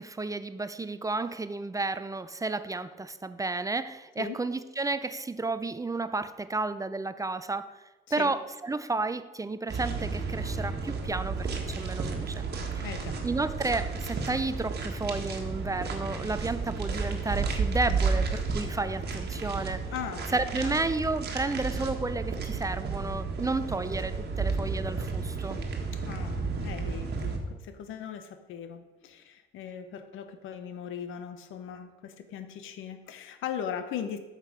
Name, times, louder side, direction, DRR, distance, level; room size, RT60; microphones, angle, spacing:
voice 1, 0.0-7.8 8.1-12.4 12.8-12.9 13.2-19.8 20.3-25.6, right 3 dB, 15° right, 13 dB, 0.4 m, -32 dB
sound 1, 9.7-27.4, right 4 dB, 55° right, 1.5 m, -32 dB
voice 2, 12.8-13.2 19.9-20.3 20.6-20.7 25.9-34.2, left 8 dB, 85° left, 10 dB, 0.8 m, -39 dB
8.1 x 5.9 x 5.0 m, 1.2 s
cardioid pair, 90°, 20 cm